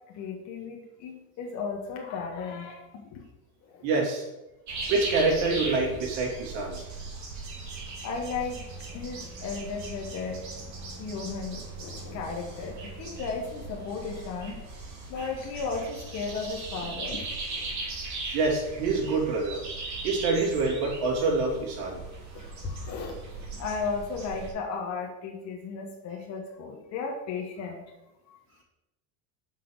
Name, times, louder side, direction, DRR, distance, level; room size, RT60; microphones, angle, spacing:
voice 1, 0.1-3.2 3.6-3.9 8.0-8.6 8.9-10.4 11.0-14.6 15.1-17.8 22.3-27.9 28.3-28.4, left 4 dB, 40° left, 1 dB, 1.4 m, -35 dB
voice 2, 3.8-4.2 4.9-6.8 18.3-19.6 20.0-22.0, right 3 dB, 60° right, -2 dB, 3.1 m, -26 dB
sound 1, 4.7-24.5, right 3 dB, 40° right, 2.7 m, -39 dB
6.0 x 5.6 x 6.4 m, 0.98 s
supercardioid pair, 130°, 43 cm